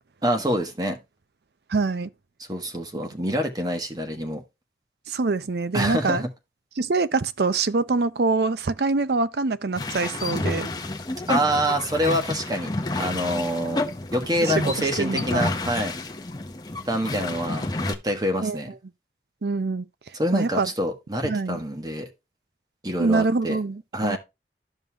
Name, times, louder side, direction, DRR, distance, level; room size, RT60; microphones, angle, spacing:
voice 1, 0.2-1.0 2.5-4.4 5.7-6.3 11.3-12.7 13.0-13.8 14.1-16.0 16.9-18.7 20.1-22.1 22.8-23.6 23.9-24.2, equal, 20° right, 1.3 m, -26 dB
voice 2, 1.7-2.1 5.1-6.2 6.8-10.7 14.4-14.7 15.0-15.5 18.4-18.6 19.4-19.9 20.3-20.7 21.2-21.6 23.0-24.2, right 3 dB, 70° right, 0.6 m, -24 dB
sound 1, 9.8-18.0, left 2 dB, 25° left, 0.7 m, -30 dB
13.0 x 5.4 x 2.3 m
head